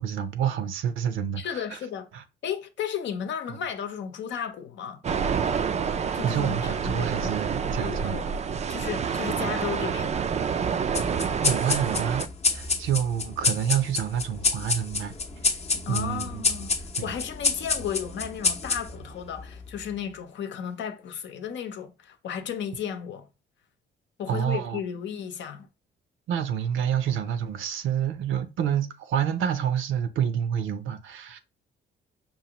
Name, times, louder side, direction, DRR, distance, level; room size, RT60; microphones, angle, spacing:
voice 1, 0.0-1.8 2.1-2.2 6.2-8.2 11.4-15.2 15.4-15.5 15.9-16.5 17.0-17.1 24.3-24.8 26.3-31.4, right 9 dB, 80° right, 0.7 m, -28 dB
voice 2, 1.4-2.1 2.4-5.0 6.1-7.4 7.8-8.3 8.7-10.2 15.9-16.7 17.0-23.3 24.2-25.7, left 8 dB, 65° left, 0.7 m, -34 dB
sound 1, 5.0-12.3, right 6 dB, 35° right, 0.3 m, -28 dB
sound 2, 10.9-19.8, left 4 dB, 35° left, 0.7 m, -28 dB
5.4 x 2.5 x 2.9 m
cardioid pair, 90°, 20 cm